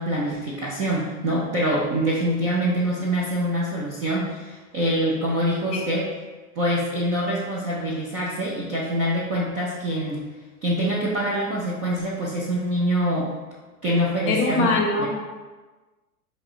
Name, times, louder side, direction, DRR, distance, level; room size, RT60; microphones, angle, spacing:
voice 1, 0.0-6.1 6.6-10.2 10.6-13.3 13.8-14.7 15.0-15.1, equal, 20° right, -7 dB, 0.3 m, -25 dB
voice 2, 14.3-15.1, left 2 dB, 30° left, 1 dB, 0.7 m, -22 dB
5.2 x 2.9 x 2.4 m, 1.3 s
hypercardioid pair, 100°, 45 cm